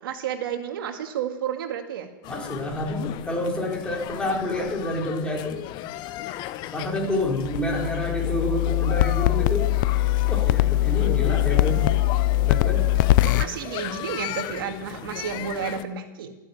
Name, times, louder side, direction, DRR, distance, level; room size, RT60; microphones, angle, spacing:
voice 1, 0.0-2.1 13.2-16.3, right 8 dB, 80° right, 5 dB, 2.0 m, -31 dB
sound 1, 2.2-15.8, left 13 dB, 40° left, 0.9 m, -36 dB
voice 2, 2.3-5.6 6.7-9.7 10.3-11.9 12.4-12.9, left 1 dB, 10° left, -2 dB, 4.4 m, -28 dB
sound 2, 7.3-13.4, left 16 dB, 60° left, 0.4 m, -22 dB
14.0 x 10.0 x 9.0 m, 1.0 s
supercardioid pair, 135°, 12 cm